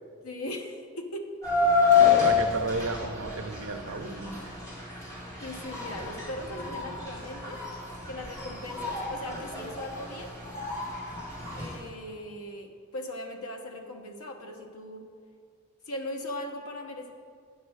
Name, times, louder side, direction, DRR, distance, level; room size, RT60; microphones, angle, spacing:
voice 1, 0.2-1.3 5.4-7.6 8.1-10.3 11.5-15.1 15.8-17.1, left 1 dB, 85° left, 3 dB, 1.2 m, -39 dB
sound 1, 1.4-11.8, left 5 dB, 15° left, 2.2 m, -28 dB
voice 2, 2.2-4.4, right 3 dB, 65° right, 7 dB, 0.7 m, -33 dB
9.3 x 6.4 x 6.4 m, 2.1 s
head